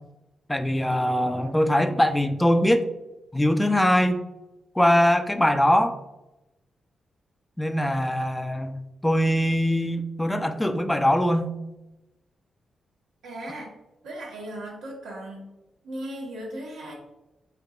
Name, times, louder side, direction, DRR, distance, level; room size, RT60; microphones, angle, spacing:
voice 1, 0.5-2.8 3.3-4.2 4.8-6.0 7.6-8.8 9.0-11.5, equal, 10° left, 7 dB, 0.5 m, -22 dB
voice 2, 13.2-13.7 14.0-15.5 15.8-16.9, right 1 dB, 80° right, -3 dB, 1.2 m, -37 dB
5.7 x 2.7 x 2.4 m, 0.95 s
hypercardioid pair, 40°, 0 cm